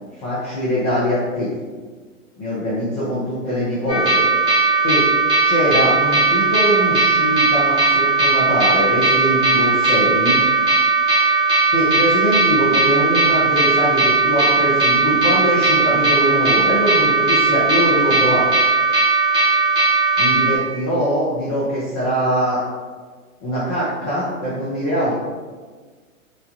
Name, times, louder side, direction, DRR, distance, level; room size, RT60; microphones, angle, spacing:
voice 1, 0.2-1.5 2.4-4.3 4.8-5.0 5.4-10.4 11.7-18.4 20.2-22.6 23.4-25.2, equal, 30° left, -9 dB, 0.6 m, -22 dB
sound 1, 3.9-20.6, right 3 dB, 10° right, 0.6 m, -17 dB
3.0 x 2.2 x 2.6 m, 1.4 s
figure-of-eight pair, 115°, 42 cm